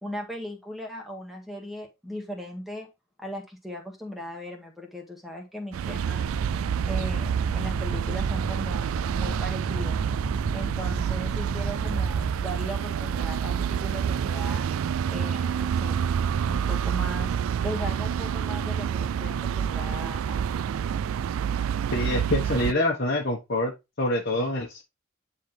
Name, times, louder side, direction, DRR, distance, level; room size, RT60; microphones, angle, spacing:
voice 1, 0.0-2.9 3.2-6.3 6.9-8.9 9.1-10.0 10.5-14.7 15.1-16.1 16.4-17.3 17.6-20.5, equal, ahead, 1.9 m, -37 dB
sound 1, 5.7-22.7, right 8 dB, 85° right, 0.3 m, -28 dB
sound 2, 6.2-12.4, right 1 dB, 25° right, 1.2 m, -35 dB
voice 2, 21.9-23.7 24.0-24.8, left 1 dB, 50° left, 1.3 m, -26 dB
10.0 x 4.1 x 3.3 m
head